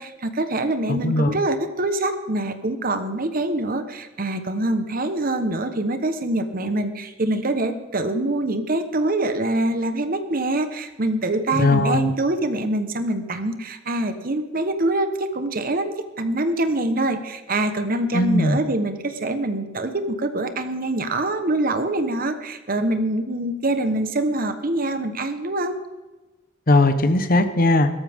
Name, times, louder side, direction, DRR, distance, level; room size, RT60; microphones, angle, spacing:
voice 1, 0.0-25.8, right 2 dB, 45° right, 9 dB, 1.1 m, -24 dB
voice 2, 0.9-1.4 11.5-12.1 18.1-18.6 26.7-27.9, left 2 dB, 45° left, 10 dB, 1.0 m, -19 dB
17.5 x 13.5 x 3.6 m, 1.2 s
head